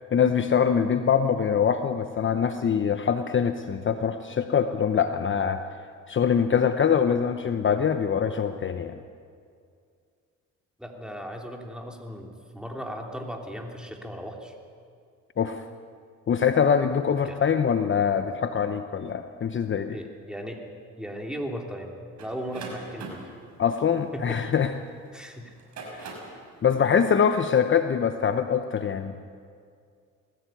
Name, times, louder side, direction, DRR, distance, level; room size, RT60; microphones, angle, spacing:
voice 1, 0.1-5.6 6.1-9.0 15.4-15.6 16.3-20.0 23.6-24.7 26.0-26.1 26.6-29.1, left 7 dB, 40° left, 8 dB, 0.9 m, -24 dB
voice 2, 10.8-14.5 17.2-17.4 19.9-23.2 24.1-24.4 25.1-25.5, equal, 5° right, 1 dB, 3.2 m, -37 dB
sound 1, 22.2-24.9 25.5-26.4, right 3 dB, 65° right, 6.0 m, -41 dB
20.0 x 15.0 x 9.3 m, 2.2 s
cardioid pair, 90°, 30 cm